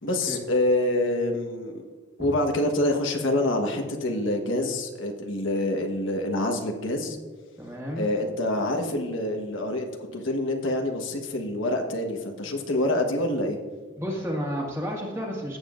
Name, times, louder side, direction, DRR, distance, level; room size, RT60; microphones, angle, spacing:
voice 1, 0.0-1.8 2.2-7.2 8.0-13.6, left 1 dB, 85° left, 3 dB, 1.3 m, -26 dB
voice 2, 7.6-8.1 14.0-15.6, equal, 15° right, -1 dB, 1.9 m, -31 dB
16.5 x 7.4 x 2.5 m, 1.5 s
head